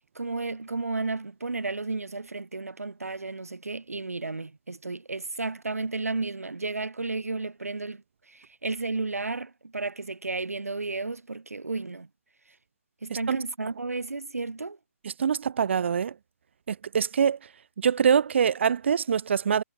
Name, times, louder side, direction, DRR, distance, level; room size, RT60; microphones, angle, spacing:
voice 1, 0.2-12.1 13.0-14.8, right 3 dB, 75° right, 5.1 m, -33 dB
voice 2, 15.2-16.1 16.7-17.4 17.8-19.6, right 7 dB, 50° right, 5.0 m, -24 dB
figure-of-eight pair, 145°, 8 cm